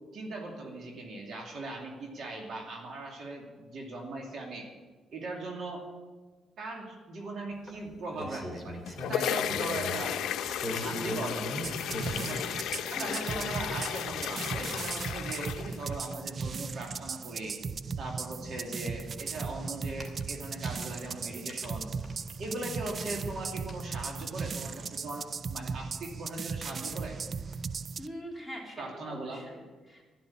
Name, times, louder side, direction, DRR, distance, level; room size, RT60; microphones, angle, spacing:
voice 1, 0.1-4.7 5.1-5.9 6.6-8.8 9.1-11.5 12.1-12.5 12.9-17.6 18.0-21.9 22.4-25.2 25.5-27.2 28.8-29.4, right 2 dB, 60° right, 1 dB, 2.5 m, -39 dB
sound 1, 7.7-10.0 10.4-12.4 13.3-13.4 13.8-13.9 14.1-14.2 14.5-14.6 16.5-16.6 16.9-17.0 18.9-19.1 19.8-22.6 22.9-24.5, equal, 20° right, 2.5 m, -40 dB
sound 2, 8.7-16.1, left 10 dB, 80° left, 0.6 m, -34 dB
sound 3, 11.6-28.1, right 5 dB, 45° right, 0.4 m, -37 dB
voice 2, 13.0-13.4 28.0-30.1, equal, 5° right, -1 dB, 3.6 m, -44 dB
12.0 x 11.0 x 7.2 m, 1.3 s
cardioid pair, 90°, 0 cm